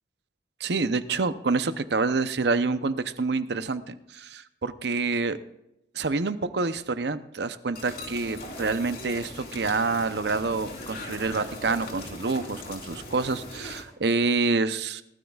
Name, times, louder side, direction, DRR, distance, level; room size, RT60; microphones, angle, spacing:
voice 1, 0.6-5.4 5.9-15.0, right 3 dB, 70° right, 12 dB, 0.7 m, -27 dB
sound 1, 7.7-13.8, left 2 dB, 55° left, 3.3 m, -40 dB
19.0 x 12.5 x 2.4 m, 0.86 s
head